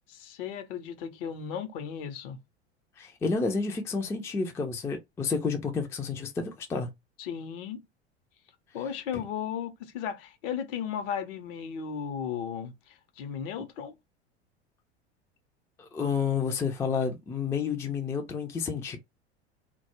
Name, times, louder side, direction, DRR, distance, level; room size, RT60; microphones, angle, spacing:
voice 1, 0.1-2.4 7.2-7.8 8.7-13.9, left 8 dB, 55° left, 0.7 m, -35 dB
voice 2, 3.0-6.9 9.1-9.2 15.8-19.0, left 5 dB, 10° left, 0.3 m, -30 dB
2.2 x 2.0 x 2.9 m
figure-of-eight pair, 80°, 34 cm